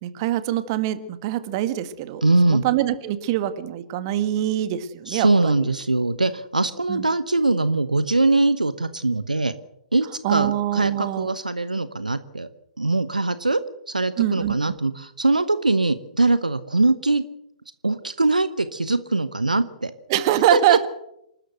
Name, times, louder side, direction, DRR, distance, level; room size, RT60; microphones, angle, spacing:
voice 1, 0.0-2.2 2.5-5.7 6.9-7.1 10.2-11.3 14.2-14.6 20.1-20.9, right 12 dB, 35° right, 12 dB, 1.8 m, -24 dB
voice 2, 2.2-2.6 5.1-9.5 9.9-12.5 12.8-13.6 13.9-17.2 17.8-19.9 20.5-20.9, right 2 dB, 80° right, 13 dB, 1.1 m, -22 dB
27.5 x 13.0 x 8.0 m, 0.81 s
figure-of-eight pair, 115°, 4 cm